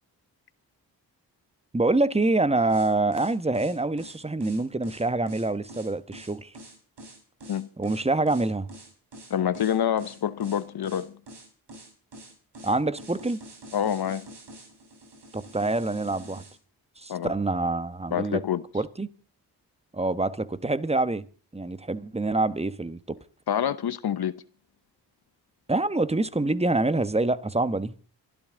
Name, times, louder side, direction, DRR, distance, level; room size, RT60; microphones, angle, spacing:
voice 1, 1.7-6.5 7.8-8.7 12.6-13.4 15.3-16.4 17.0-18.4 18.7-19.1 19.9-21.2 21.5-23.2 25.7-28.0, right 2 dB, 15° right, 1.2 m, -26 dB
sound 1, 2.7-16.6, right 1 dB, 70° right, 5.2 m, -46 dB
voice 2, 9.3-11.2 13.7-14.3 17.1-17.3 18.1-18.6 23.5-24.3, left 9 dB, 60° left, 0.9 m, -27 dB
28.0 x 12.5 x 3.8 m
supercardioid pair, 40°, 43 cm